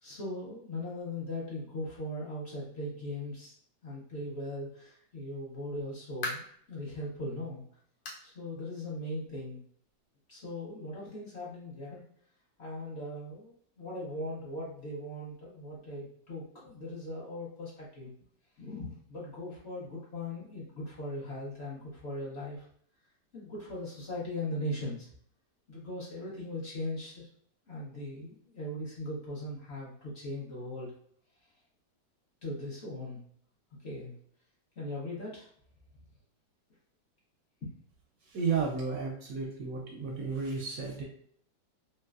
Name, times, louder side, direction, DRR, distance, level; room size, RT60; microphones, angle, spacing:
voice 1, 0.0-3.5 3.8-6.4 6.7-7.6 8.2-9.6 10.3-12.0 12.6-18.1 18.6-22.7 23.3-25.1 25.7-27.3 27.7-30.9 32.4-33.2 33.8-34.1 34.8-35.5 37.6-37.7, left 1 dB, 50° left, -6 dB, 0.9 m, -39 dB
sound 1, 5.8-6.7 7.2-7.3 8.0-8.3 8.6-8.7 9.2-9.3 10.4-10.5, left 2 dB, 85° left, 1.4 m, -40 dB
voice 2, 38.2-41.0, right 5 dB, 70° right, 0 dB, 0.8 m, -33 dB
3.1 x 3.0 x 2.3 m, 0.62 s
omnidirectional pair, 1.9 m